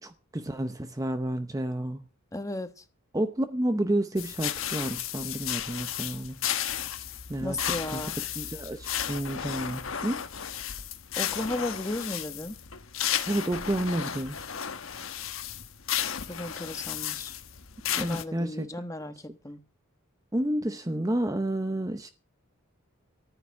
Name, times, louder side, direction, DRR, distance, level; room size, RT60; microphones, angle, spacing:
voice 1, 0.0-2.0 3.1-6.4 7.3-7.6 7.9-8.0 8.4-10.2 13.3-14.5 18.0-18.7 20.3-22.1, right 1 dB, 15° right, 0.7 m, -30 dB
voice 2, 2.3-2.8 7.4-8.2 11.2-12.6 16.3-17.3 18.0-19.6, left 1 dB, 15° left, 1.2 m, -35 dB
sound 1, 4.2-18.2, left 9 dB, 70° left, 1.2 m, -34 dB
14.0 x 5.9 x 9.6 m
head